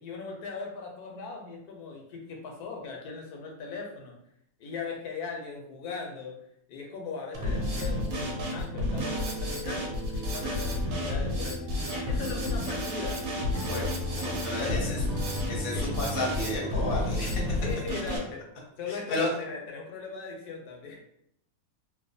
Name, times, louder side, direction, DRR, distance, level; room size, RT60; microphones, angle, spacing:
voice 1, 0.0-4.2 4.6-6.4 6.7-11.6 11.9-13.2 13.5-15.0 15.7-15.8 17.6-18.5 18.8-21.0, left 5 dB, 85° left, 1 dB, 1.1 m, -39 dB
Drum kit, 7.3-18.2, left 1 dB, 70° right, 1.1 m, -31 dB
voice 2, 13.6-15.0 15.5-17.4 18.9-19.3, left 1 dB, 50° left, -2 dB, 0.7 m, -32 dB
2.8 x 2.0 x 2.6 m, 0.73 s
omnidirectional pair, 1.6 m